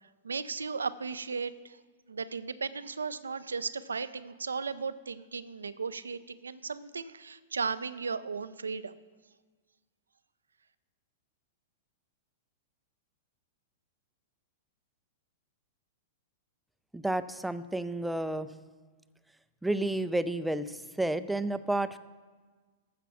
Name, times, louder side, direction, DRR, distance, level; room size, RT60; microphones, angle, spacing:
voice 1, 0.2-1.8 2.1-8.9, right 5 dB, 80° right, 15 dB, 0.5 m, -36 dB
voice 2, 16.9-18.5 19.6-22.0, right 1 dB, 5° right, 12 dB, 0.5 m, -31 dB
14.0 x 6.0 x 5.7 m, 1.4 s
figure-of-eight pair, 100°, 0 cm